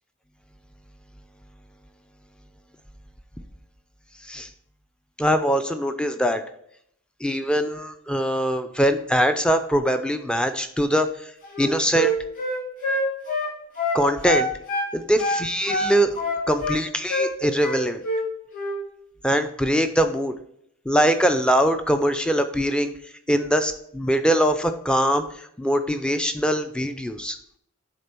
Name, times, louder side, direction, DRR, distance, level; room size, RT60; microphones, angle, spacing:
voice 1, 5.2-6.4 7.2-11.3 11.6-12.1 13.9-14.5 14.9-16.1 16.5-18.0 19.2-20.3 20.9-27.4, equal, 5° left, 8 dB, 0.4 m, -22 dB
Wind instrument woodwind instrument, 11.4-14.9 15.2-16.8 17.1-17.3 17.6-18.3 18.5-18.8, equal, 35° left, 1.8 m, -25 dB
8.7 x 3.7 x 4.4 m, 0.72 s
head